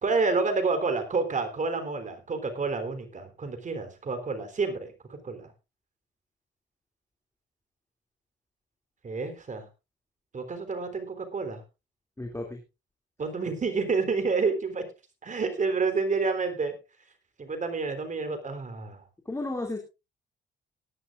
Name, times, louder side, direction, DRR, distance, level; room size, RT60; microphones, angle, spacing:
voice 1, 0.0-5.5 9.0-9.7 10.3-11.6 13.2-14.8 15.2-16.7 17.4-19.0, right 4 dB, 40° right, 7 dB, 3.6 m, -29 dB
voice 2, 12.2-12.6 19.3-19.8, left 2 dB, 15° left, 1 dB, 2.7 m, -33 dB
18.5 x 11.0 x 2.5 m, 0.27 s
cardioid pair, 90°, 20 cm